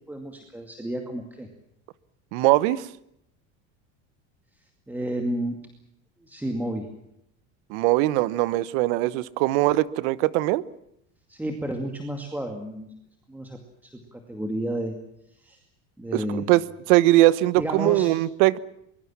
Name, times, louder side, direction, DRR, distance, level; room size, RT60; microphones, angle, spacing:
voice 1, 0.1-1.5 4.9-5.6 6.3-6.9 11.3-12.9 13.3-15.0 15.4-15.6 16.0-16.5 17.6-18.1, right 1 dB, 5° right, 4 dB, 2.2 m, -31 dB
voice 2, 2.3-2.9 7.7-10.6 16.1-16.6 16.9-18.6, right 17 dB, 75° right, 18 dB, 1.2 m, -21 dB
24.0 x 22.0 x 7.5 m, 0.78 s
cardioid pair, 150°, 36 cm